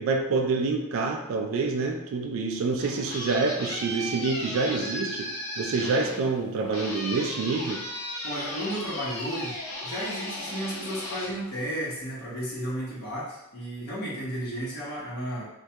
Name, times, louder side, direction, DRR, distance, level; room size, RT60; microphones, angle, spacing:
voice 1, 0.0-5.3 5.6-7.8, right 3 dB, 65° right, 3 dB, 0.3 m, -27 dB
sound 1, 2.5-12.2, left 1 dB, 85° left, 0.7 m, -36 dB
voice 2, 8.2-9.6 9.8-15.5, equal, 45° left, -6 dB, 0.7 m, -33 dB
2.2 x 2.1 x 2.7 m, 0.90 s
head